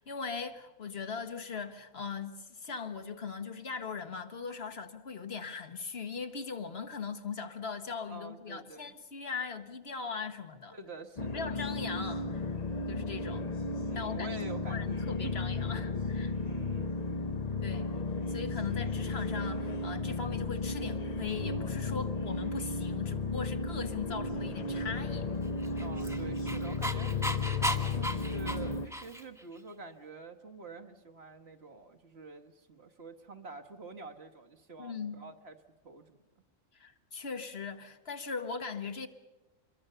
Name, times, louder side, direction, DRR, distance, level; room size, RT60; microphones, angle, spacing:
voice 1, 0.0-10.8 11.3-12.6 12.9-13.5 13.9-14.4 14.7-16.3 17.6-17.9 18.3-25.3 25.6-25.8 34.8-35.2 36.7-39.1, left 5 dB, 50° left, 1.3 m, -39 dB
voice 2, 8.1-8.9 10.7-11.5 13.8-15.3 16.4-16.9 25.8-27.1 27.9-35.6 35.8-36.2, right 3 dB, 50° right, 1.5 m, -47 dB
sound 1, 11.2-28.9, left 3 dB, 35° left, 0.8 m, -34 dB
Dog, 25.6-29.4, equal, ahead, 1.2 m, -36 dB
25.5 x 22.5 x 6.7 m
omnidirectional pair, 1.4 m